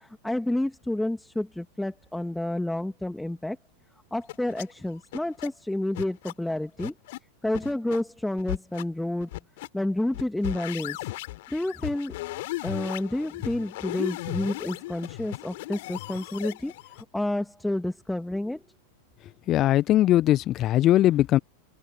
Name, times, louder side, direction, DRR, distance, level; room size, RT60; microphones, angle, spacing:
voice 1, 0.0-3.6 4.1-6.9 7.4-9.3 9.7-11.0 11.5-12.1 12.6-18.6, left 1 dB, 5° left, 2.5 m, -30 dB
sound 1, 4.3-4.6 5.1-5.5 6.0-6.3 6.8-7.2 7.5-8.0 8.4-8.8 9.2-9.7 10.1-17.0, left 19 dB, 50° left, 4.2 m, -36 dB
voice 2, 19.5-21.4, left 14 dB, 35° left, 1.2 m, -20 dB
figure-of-eight pair, 90°, 0 cm